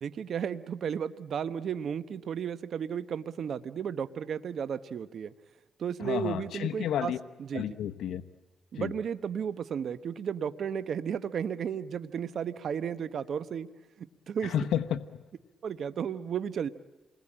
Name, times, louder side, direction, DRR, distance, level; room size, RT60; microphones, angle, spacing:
voice 1, 0.0-5.3 5.8-7.1 7.5-7.6 8.7-13.7 14.0-14.5 15.6-16.7, right 7 dB, 65° right, 13 dB, 1.0 m, -33 dB
voice 2, 6.0-7.2 7.5-8.2 8.7-8.9 14.4-15.2, left 10 dB, 80° left, 9 dB, 1.0 m, -31 dB
28.5 x 21.0 x 8.8 m, 1.2 s
cardioid pair, 80°, 0 cm